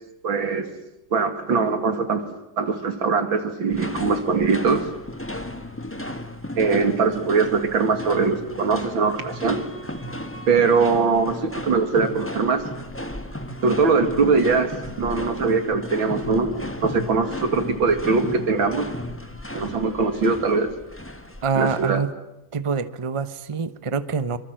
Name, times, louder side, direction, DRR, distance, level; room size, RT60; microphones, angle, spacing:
voice 1, 0.2-0.6 1.1-2.3 2.6-4.9 6.6-9.7 10.5-12.6 13.6-14.7 15.0-18.9 19.5-20.7 21.6-22.0, right 4 dB, 90° right, 8 dB, 3.1 m, -21 dB
sound 1, 3.7-21.9, left 1 dB, 5° left, 1.3 m, -35 dB
voice 2, 21.4-22.1 22.5-24.4, right 5 dB, 25° right, 13 dB, 0.7 m, -25 dB
25.5 x 24.5 x 7.8 m, 0.91 s
omnidirectional pair, 2.1 m